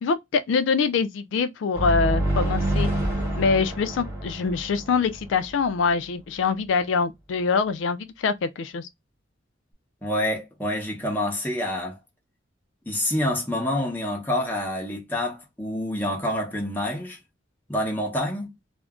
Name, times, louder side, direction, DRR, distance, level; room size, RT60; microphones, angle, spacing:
voice 1, 0.0-2.9 3.4-8.9, left 5 dB, 80° left, 0.3 m, -24 dB
sound 1, 1.7-5.5, right 1 dB, 10° right, 1.1 m, -27 dB
voice 2, 10.0-12.0 12.9-17.2 17.7-18.5, left 1 dB, 10° left, 0.8 m, -27 dB
2.4 x 2.1 x 3.5 m
head